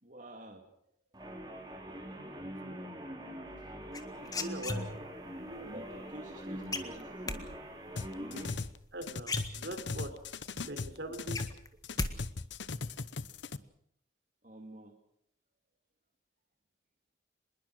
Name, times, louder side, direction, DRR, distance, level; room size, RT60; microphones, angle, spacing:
voice 1, 0.0-0.7 3.6-3.7 5.4-7.5 8.2-8.6 10.6-10.8 14.4-14.9, right 1 dB, 45° right, 1 dB, 2.5 m, -48 dB
sound 1, 1.1-8.6, equal, 20° right, 5.0 m, -44 dB
voice 2, 2.4-2.8 4.2-4.9 8.9-10.1 10.6-11.5, right 1 dB, 70° right, 7 dB, 3.9 m, -42 dB
sound 2, 3.9-5.2 6.7-7.4 8.8-8.9 9.2-10.0 10.5-10.6 10.9-12.1 12.4-12.9, left 3 dB, 20° left, 1.7 m, -36 dB
sound 3, 8.0-8.8 9.0-11.6 11.8-13.6, left 4 dB, 80° left, 0.9 m, -38 dB
25.5 x 21.5 x 6.4 m, 0.70 s
head